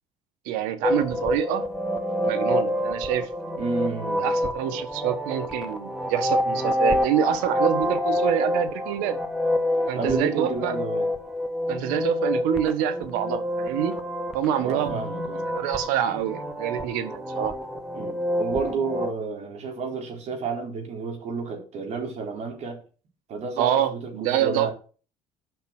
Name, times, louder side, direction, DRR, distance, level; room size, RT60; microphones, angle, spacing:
voice 1, 0.4-1.6 2.3-3.3 4.2-9.2 9.9-10.7 11.7-14.0 14.3-15.0 15.5-17.5 23.6-24.7, right 10 dB, 90° right, 1.6 m, -26 dB
sound 1, 0.8-19.1, left 1 dB, 5° right, 1.7 m, -27 dB
voice 2, 3.6-4.3 9.9-11.1 14.6-15.5 17.9-22.8 23.3-24.7, right 4 dB, 55° right, 4.4 m, -31 dB
9.6 x 6.0 x 6.2 m
cardioid pair, 105°, 14 cm